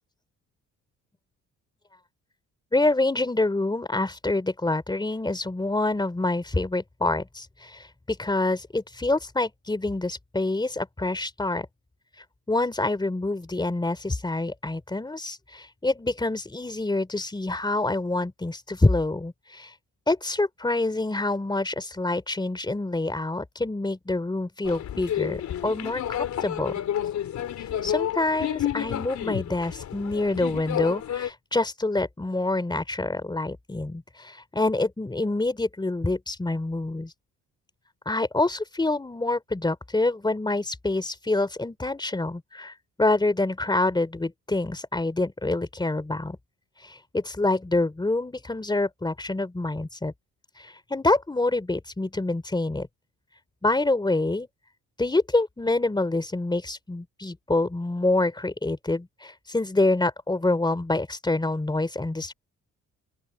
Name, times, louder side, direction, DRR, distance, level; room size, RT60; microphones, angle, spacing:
voice 1, 2.7-11.7 12.5-19.7 20.1-26.7 27.8-37.1 38.0-46.4 46.8-50.1 50.6-52.9 53.6-54.5 55.0-62.3, left 2 dB, 15° left, 3.1 m, -26 dB
sound 1, 24.6-31.3, left 10 dB, 65° left, 3.9 m, -30 dB
open air
cardioid pair, 90°, 30 cm